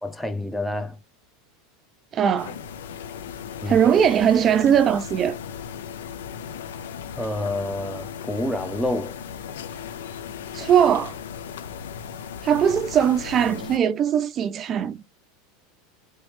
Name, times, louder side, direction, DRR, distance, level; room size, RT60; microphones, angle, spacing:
voice 1, 0.0-1.0 3.6-3.8 7.2-9.1, left 1 dB, 5° left, 0.8 m, -28 dB
voice 2, 2.1-2.6 3.7-5.4 10.5-11.2 12.4-15.0, right 8 dB, 35° right, 0.4 m, -20 dB
sound 1, 2.4-13.8, left 8 dB, 85° left, 0.5 m, -37 dB
3.5 x 3.1 x 3.0 m
supercardioid pair, 110°, 0 cm